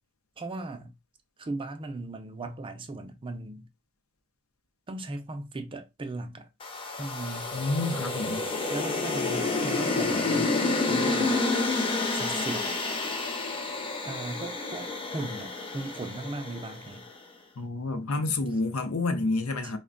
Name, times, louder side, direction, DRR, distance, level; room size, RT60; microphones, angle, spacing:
voice 1, 0.4-1.0 1.4-3.7 4.9-6.5 7.0-7.5 8.7-10.6 10.9-11.4 12.1-12.8 14.0-17.1 19.6-19.8, right 2 dB, 25° right, 0.4 m, -37 dB
sound 1, 6.6-16.9, left 3 dB, 25° left, 0.6 m, -29 dB
voice 2, 7.5-8.4 17.6-19.8, left 2 dB, 75° left, 0.6 m, -29 dB
3.3 x 2.2 x 3.7 m
head